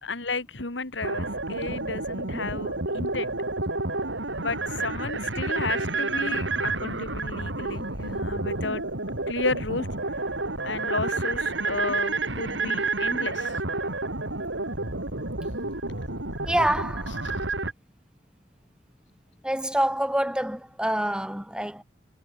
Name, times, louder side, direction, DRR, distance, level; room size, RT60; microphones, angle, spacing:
voice 1, 0.0-3.3 4.3-8.8 9.3-9.9 10.6-13.6 17.2-17.3, left 3 dB, 80° left, 2.7 m, -33 dB
sound 1, 1.0-17.7, right 3 dB, 90° right, 6.4 m, -30 dB
voice 2, 16.5-17.1 19.4-21.8, right 1 dB, 5° right, 4.9 m, -26 dB
head